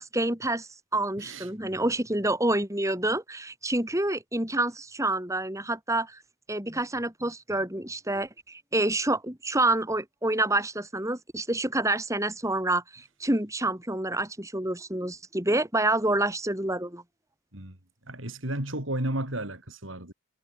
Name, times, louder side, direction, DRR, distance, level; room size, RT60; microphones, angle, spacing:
voice 1, 0.0-6.2 6.5-17.0, right 2 dB, 15° right, 4.4 m, -28 dB
voice 2, 1.2-1.5 17.5-17.8 18.1-20.1, right 1 dB, 70° right, 5.9 m, -33 dB
head